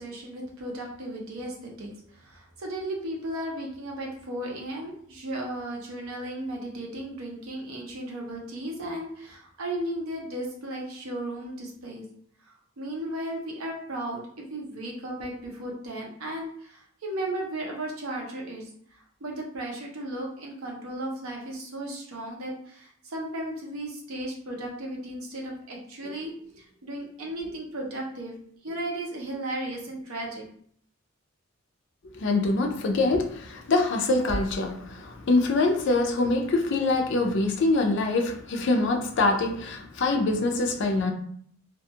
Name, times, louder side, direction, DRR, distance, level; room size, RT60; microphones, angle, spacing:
voice 1, 0.0-12.0 12.5-28.4 28.6-30.5, right 1 dB, 75° right, 0 dB, 0.6 m, -35 dB
voice 2, 32.1-41.1, left 2 dB, 55° left, 4 dB, 0.4 m, -24 dB
2.4 x 2.2 x 2.7 m, 0.63 s
head